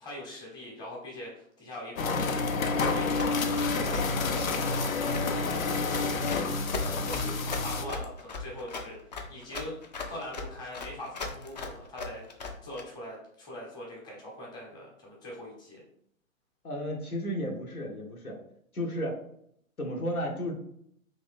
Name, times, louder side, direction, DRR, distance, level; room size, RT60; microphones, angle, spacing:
voice 1, 0.0-2.3 2.6-4.0 4.4-6.5 7.0-9.8 10.0-12.2 12.6-15.8, left 1 dB, 10° left, -4 dB, 0.9 m, -42 dB
sound 1, 2.0-7.8, left 4 dB, 70° left, 0.6 m, -29 dB
Run, 2.8-12.8, left 3 dB, 35° left, 0.4 m, -37 dB
voice 2, 16.6-18.4 18.7-19.2 19.8-20.6, equal, 85° left, 1 dB, 1.1 m, -33 dB
3.1 x 2.6 x 3.4 m, 0.70 s
figure-of-eight pair, 120°, 42 cm